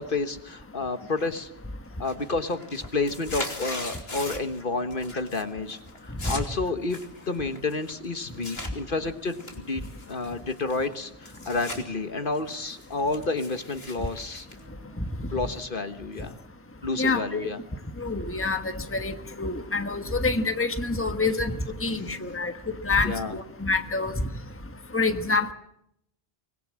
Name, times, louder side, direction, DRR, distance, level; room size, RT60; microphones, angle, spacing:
voice 1, 0.0-1.5 2.0-7.0 7.3-14.5 15.3-16.3 16.8-17.6 21.9-22.2 23.0-23.3, left 3 dB, 55° left, 9 dB, 1.5 m, -30 dB
sound 1, 1.2-1.6 1.9-4.6 4.9-5.4 5.7-8.7 9.3-11.8 12.2-15.3, left 2 dB, 75° left, 3.4 m, -40 dB
voice 2, 17.0-17.5 18.0-24.1 24.9-25.5, left 3 dB, 15° left, 8 dB, 1.3 m, -27 dB
24.5 x 21.0 x 7.5 m, 0.76 s
omnidirectional pair, 1.0 m